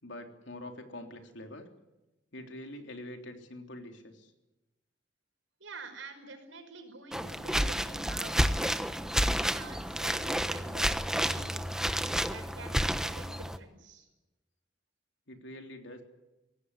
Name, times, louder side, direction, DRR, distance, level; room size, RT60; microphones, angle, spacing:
voice 1, 0.0-1.7 2.3-4.3 15.3-16.0, left 1 dB, 70° left, 4 dB, 3.5 m, -45 dB
voice 2, 5.6-8.8 9.3-11.7 12.3-14.1, right 3 dB, 85° right, 6 dB, 5.4 m, -48 dB
sound 1, 7.1-13.6, equal, 5° right, 1.1 m, -30 dB
24.5 x 18.0 x 9.7 m, 1.0 s
head